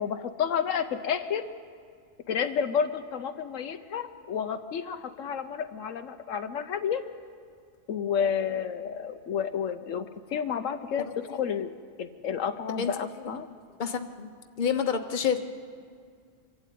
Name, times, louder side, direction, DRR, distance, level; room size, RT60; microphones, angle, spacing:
voice 1, 0.0-1.4 2.3-7.0 7.9-10.1 10.3-11.7 12.0-13.5, left 7 dB, 75° left, 8 dB, 1.1 m, -30 dB
voice 2, 13.8-14.3 14.6-15.4, left 7 dB, 40° left, 6 dB, 1.1 m, -28 dB
25.0 x 12.5 x 9.2 m, 2.1 s
omnidirectional pair, 1.4 m